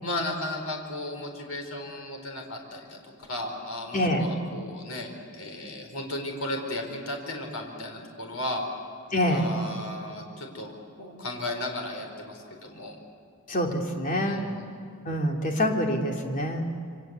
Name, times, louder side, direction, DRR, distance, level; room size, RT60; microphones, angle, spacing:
voice 1, 0.0-8.7 9.3-12.9 14.3-14.7, left 1 dB, 70° left, 3 dB, 4.7 m, -35 dB
voice 2, 3.9-4.3 9.1-9.5 13.5-14.4 15.0-16.6, equal, 35° left, 1 dB, 3.1 m, -26 dB
28.0 x 24.5 x 8.3 m, 2.4 s
head